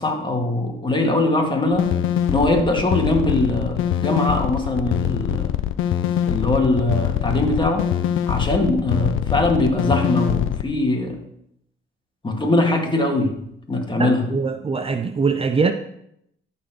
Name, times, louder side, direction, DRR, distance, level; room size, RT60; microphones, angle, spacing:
voice 1, 0.0-2.0 2.3-5.6 6.2-7.9 8.3-11.2 12.2-13.3 13.7-14.3, left 2 dB, 25° left, 2.2 m, -21 dB
sound 1, 1.7-10.6, left 10 dB, 85° left, 0.5 m, -23 dB
voice 2, 13.9-15.7, right 4 dB, 30° right, 0.6 m, -22 dB
13.0 x 4.4 x 6.1 m
cardioid pair, 90°, 20 cm